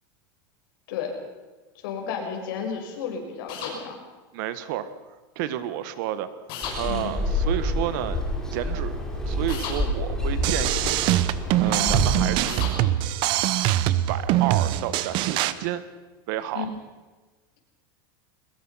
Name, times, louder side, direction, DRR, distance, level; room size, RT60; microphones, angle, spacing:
voice 1, 1.8-4.0 6.9-7.1 11.6-11.9 16.5-16.6, left 6 dB, 70° left, 2 dB, 6.2 m, -32 dB
sound 1, 3.5-3.8 6.5-6.8 9.5-9.8 12.5-12.8, left 6 dB, 40° left, 6.4 m, -33 dB
voice 2, 4.3-4.9 5.3-6.3 6.8-8.2 8.5-9.0 9.2-11.1 11.6-13.1 13.9-15.8 16.3-16.7, right 12 dB, 60° right, 12 dB, 1.6 m, -31 dB
sound 2, 6.6-12.4, left 1 dB, 5° left, 3.9 m, -28 dB
sound 3, 10.4-15.5, right 14 dB, 45° right, 1.0 m, -23 dB
22.0 x 21.0 x 5.8 m, 1.3 s
supercardioid pair, 155°, 12 cm